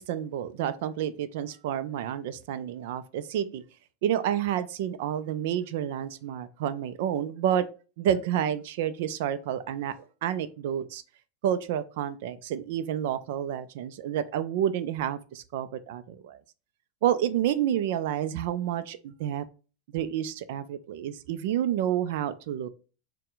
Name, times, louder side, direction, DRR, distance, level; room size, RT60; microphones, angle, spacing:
voice 1, 0.0-3.6 4.0-7.7 8.0-9.9 10.2-11.0 11.4-16.4 17.0-19.4 19.9-22.7, right 10 dB, 70° right, 12 dB, 0.3 m, -29 dB
4.3 x 2.1 x 3.8 m, 0.36 s
supercardioid pair, 135°, 0 cm